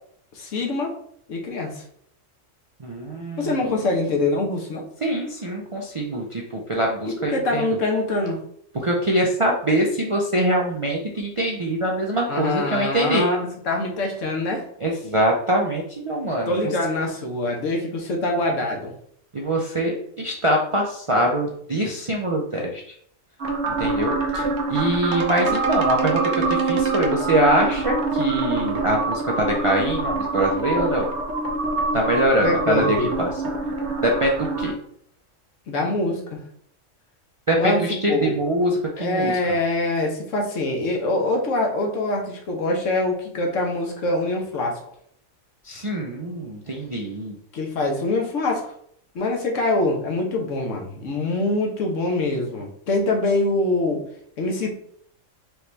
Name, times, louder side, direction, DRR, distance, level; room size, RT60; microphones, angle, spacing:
voice 1, 0.3-1.0 1.3-1.8 3.4-4.8 7.2-8.4 12.3-14.6 16.5-18.9 32.4-33.1 35.7-36.4 37.6-38.3 39.0-44.8 47.5-48.7 49.1-54.0 54.4-54.7, left 2 dB, 75° left, 1 dB, 1.3 m, -24 dB
voice 2, 2.8-3.6 5.0-7.7 8.7-13.3 14.8-16.7 19.3-22.9 23.8-31.1 31.9-33.3 34.0-34.7 37.5-39.4 45.6-47.4, right 1 dB, 45° right, -2 dB, 0.4 m, -23 dB
sound 1, 23.4-34.7, right 3 dB, 60° right, 1.1 m, -25 dB
4.6 x 3.0 x 3.3 m, 0.66 s
omnidirectional pair, 1.3 m